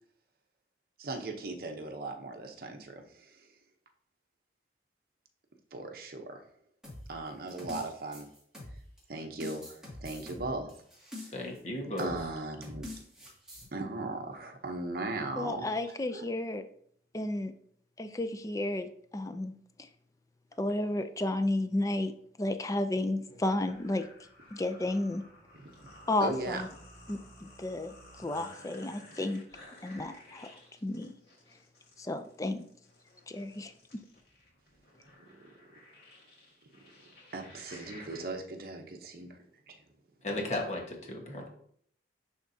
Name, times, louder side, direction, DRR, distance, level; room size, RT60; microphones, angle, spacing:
voice 1, 1.0-3.5 5.7-6.4 7.1-8.3 9.1-10.7 12.0-12.9 13.7-15.7 16.1-16.3 25.6-25.9 26.2-26.6 37.3-39.4 39.7-39.8, right 2 dB, 55° right, 3 dB, 0.8 m, -38 dB
sound 1, 6.8-9.0 9.4-11.6 12.0-12.2 12.6-13.7, left 1 dB, 5° right, 2.0 m, -45 dB
voice 2, 11.3-12.1 40.2-41.5, left 1 dB, 40° left, 1 dB, 1.2 m, -35 dB
voice 3, 15.4-16.6 17.1-17.5 18.0-19.5 20.6-22.1 22.4-24.1 24.5-25.2 26.1-26.7 27.1-29.4 29.8-30.5 30.8-31.1 32.0-32.7 33.3-33.7, left 2 dB, 20° left, 9 dB, 0.4 m, -32 dB
sound 2, 23.3-38.2, left 1 dB, 60° left, 2.0 m, -54 dB
10.5 x 3.6 x 2.7 m, 0.64 s
head